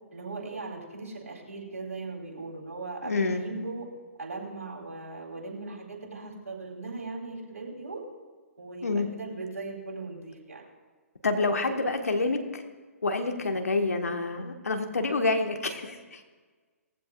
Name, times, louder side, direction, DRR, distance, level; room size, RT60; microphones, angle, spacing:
voice 1, 0.1-3.9 4.2-8.0 8.6-10.6 11.2-11.7 13.4-13.5, right 3 dB, 65° right, -2 dB, 4.3 m, -39 dB
voice 2, 3.0-3.4 8.8-9.1 11.2-12.6 13.0-16.2, left 3 dB, 75° left, 5 dB, 1.6 m, -28 dB
19.5 x 15.0 x 2.5 m, 1.4 s
figure-of-eight pair, 125°, 8 cm